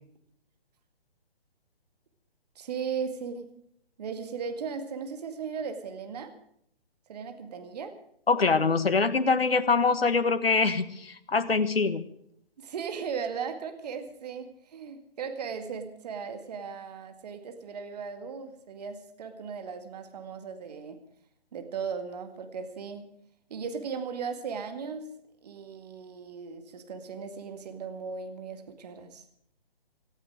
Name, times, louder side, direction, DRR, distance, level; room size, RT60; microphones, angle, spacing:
voice 1, 2.6-3.5 4.0-6.3 7.1-7.9 12.6-21.0 21.5-23.1 23.5-25.1 25.4-29.2, right 6 dB, 40° right, 7 dB, 2.2 m, -37 dB
voice 2, 8.3-12.1, left 4 dB, 75° left, 11 dB, 1.6 m, -24 dB
18.5 x 15.0 x 4.9 m, 0.70 s
figure-of-eight pair, 140°, 30 cm